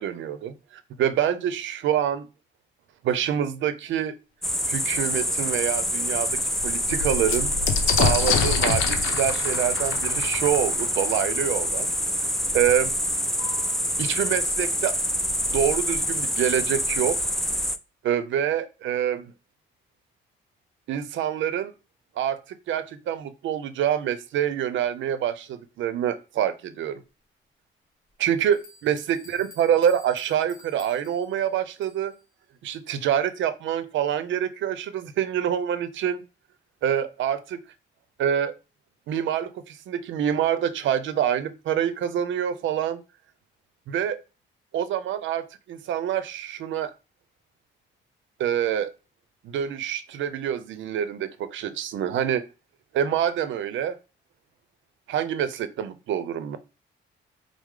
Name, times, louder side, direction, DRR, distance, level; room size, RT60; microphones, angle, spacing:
voice 1, 0.0-2.3 3.0-4.2 4.7-7.5 7.9-11.9 12.5-12.9 14.0-15.0 15.5-17.3 18.0-19.3 20.9-21.7 22.2-27.0 28.2-32.1 32.6-36.2 36.8-37.6 38.2-38.5 39.1-43.0 43.9-44.2 44.7-46.9 48.4-48.9 49.4-52.4 52.9-54.0 55.1-56.6, right 9 dB, 75° right, 12 dB, 0.6 m, -26 dB
sound 1, 4.4-17.8, equal, ahead, 0.3 m, -26 dB
sound 2, 5.2-5.3 5.8-5.9 6.2-11.7 12.7-12.8 13.0-13.6, left 6 dB, 85° left, 0.7 m, -27 dB
sound 3, 28.1-28.2 28.5-32.2, left 3 dB, 45° left, 1.7 m, -51 dB
4.8 x 2.0 x 3.6 m, 0.29 s
cardioid pair, 90°, 20 cm